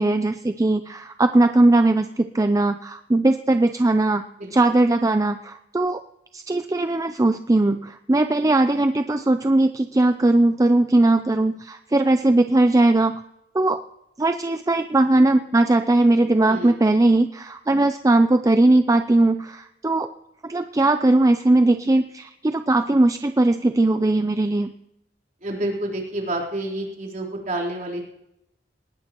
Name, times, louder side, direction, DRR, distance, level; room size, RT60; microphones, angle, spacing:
voice 1, 0.0-4.2 4.5-6.0 6.3-13.2 13.5-13.8 14.2-20.1 20.4-24.7, right 2 dB, 20° right, 8 dB, 0.4 m, -19 dB
voice 2, 16.4-16.9 25.4-28.0, right 1 dB, 45° right, -2 dB, 3.9 m, -29 dB
19.5 x 19.0 x 3.0 m, 0.83 s
head